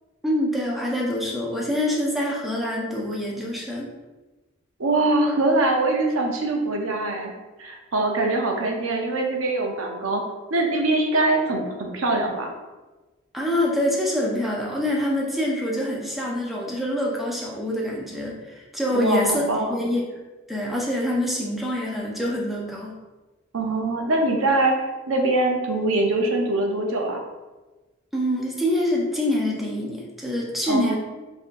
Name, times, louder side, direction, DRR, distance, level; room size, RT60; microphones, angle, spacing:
voice 1, 0.2-3.9 13.3-19.4 19.7-20.2 20.5-22.9 28.1-30.9, left 1 dB, ahead, -4 dB, 0.5 m, -25 dB
voice 2, 4.8-7.3 7.6-10.2 10.5-12.5 18.9-19.7 23.5-27.2 30.7-30.9, right 2 dB, 75° right, 1 dB, 0.6 m, -23 dB
5.5 x 2.6 x 2.5 m, 1.2 s
head